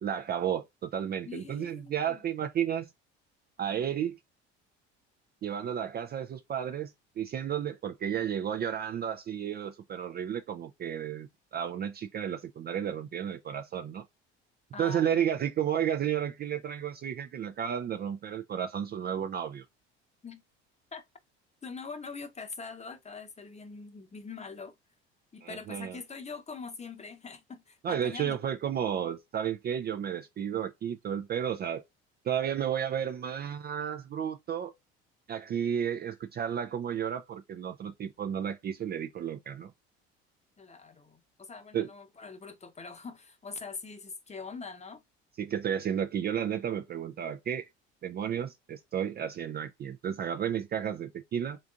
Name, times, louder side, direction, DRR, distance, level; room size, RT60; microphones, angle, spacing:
voice 1, 0.0-2.9 3.6-4.2 5.4-6.9 7.2-14.0 14.8-19.6 25.4-26.0 27.8-31.8 32.2-34.7 35.3-39.7 41.7-41.9 45.4-47.7 48.0-51.6, right 9 dB, 30° right, 0.4 m, -32 dB
voice 2, 1.2-2.2 14.7-15.5 20.2-20.4 20.9-21.0 21.6-24.8 25.3-28.4 40.6-45.0, left 4 dB, 20° left, 0.8 m, -43 dB
3.9 x 3.3 x 2.5 m
hypercardioid pair, 65°, 33 cm